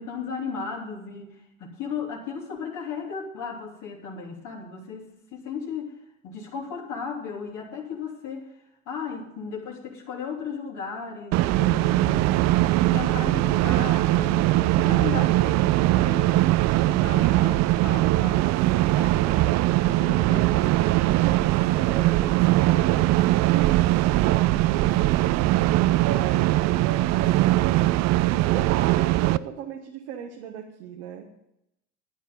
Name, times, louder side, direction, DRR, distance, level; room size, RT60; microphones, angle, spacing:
voice 1, 0.0-6.0 6.2-8.5 8.8-12.5 12.8-20.8, left 5 dB, 55° left, -2 dB, 3.1 m, -36 dB
sound 1, 11.3-29.4, right 17 dB, 50° right, 0.5 m, -21 dB
voice 2, 20.9-23.8 24.2-27.8 28.2-31.3, right 8 dB, 70° right, 2 dB, 1.4 m, -36 dB
12.5 x 9.3 x 5.4 m, 0.83 s
hypercardioid pair, 65°, 36 cm